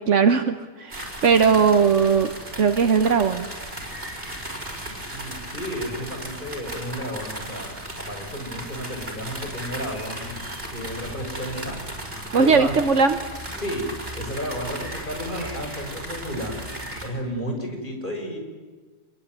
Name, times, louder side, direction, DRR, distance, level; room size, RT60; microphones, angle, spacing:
voice 1, 0.0-2.3 2.6-3.5 12.3-13.2, right 5 dB, 75° right, 8 dB, 1.5 m, -19 dB
sound 1, 0.9-17.1, right 1 dB, 50° right, 5.7 m, -36 dB
voice 2, 5.0-10.4 10.7-11.8 12.3-12.8 13.6-13.9 14.1-16.6 17.0-18.4, equal, 40° left, 2 dB, 6.3 m, -32 dB
26.5 x 22.5 x 9.4 m, 1.3 s
omnidirectional pair, 1.3 m